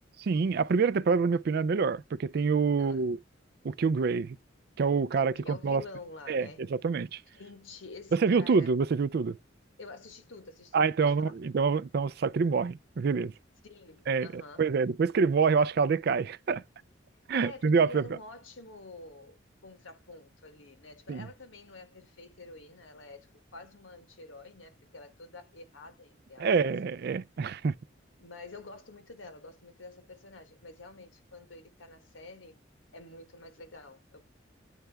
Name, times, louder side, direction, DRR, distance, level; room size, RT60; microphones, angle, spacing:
voice 1, 0.2-3.2 3.6-4.4 4.8-5.8 6.3-7.2 8.1-9.4 10.7-13.3 14.1-16.6 17.3-18.0 21.1-21.3 26.4-27.7, right 5 dB, 55° right, 0.4 m, -26 dB
voice 2, 5.4-6.7 7.3-8.7 9.8-11.4 13.6-14.7 17.3-26.7 28.2-32.6 32.9-34.2, left 2 dB, 85° left, 1.4 m, -48 dB
9.0 x 3.3 x 3.4 m
head